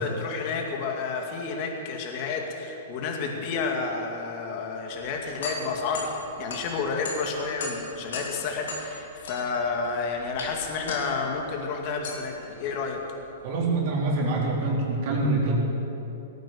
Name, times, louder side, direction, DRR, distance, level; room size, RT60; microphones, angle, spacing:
voice 1, 0.0-6.1 6.4-13.0, left 4 dB, 45° left, 2 dB, 2.2 m, -30 dB
sound 1, 4.9-14.1, left 3 dB, 75° left, 3.0 m, -39 dB
voice 2, 13.4-15.5, right 2 dB, 50° right, -3 dB, 3.6 m, -25 dB
18.0 x 9.2 x 7.1 m, 2.9 s
hypercardioid pair, 135°, 0 cm